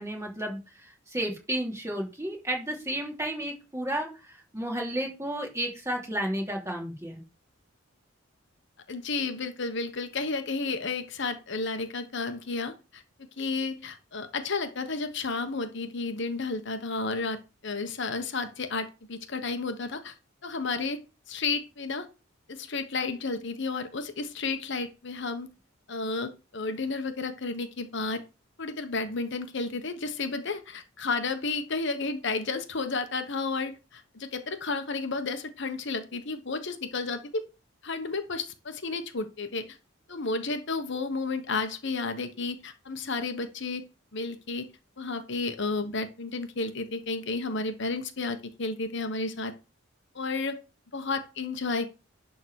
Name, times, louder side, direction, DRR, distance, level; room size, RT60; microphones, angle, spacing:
voice 1, 0.0-7.2, right 1 dB, 15° right, 0 dB, 2.8 m, -32 dB
voice 2, 8.9-13.0 13.4-17.4 17.6-20.1 20.4-21.0 21.3-22.1 22.5-25.5 25.9-28.2 28.6-37.4 37.8-39.6 40.1-43.8 44.1-44.7 45.0-49.5 50.1-50.6 50.9-51.9, left 3 dB, 60° left, 8 dB, 1.1 m, -32 dB
11.0 x 3.9 x 6.3 m, 0.30 s
head